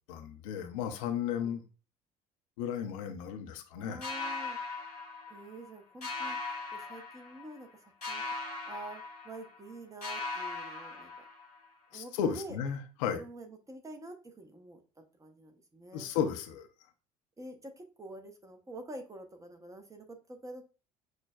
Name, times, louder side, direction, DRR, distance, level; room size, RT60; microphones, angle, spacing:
voice 1, 0.1-1.6 2.6-4.0 11.9-13.2 15.9-16.7, left 8 dB, 65° left, 0.5 m, -34 dB
voice 2, 3.7-4.6 5.3-6.4 6.7-8.2 8.7-11.1 11.9-12.6 13.1-16.1 17.4-20.6, right 1 dB, 15° right, 0.7 m, -47 dB
sound 1, 4.0-5.7 6.0-7.7 8.0-9.7 10.0-11.7, left 3 dB, 90° left, 1.1 m, -39 dB
6.2 x 2.1 x 2.2 m
figure-of-eight pair, 60°, 19 cm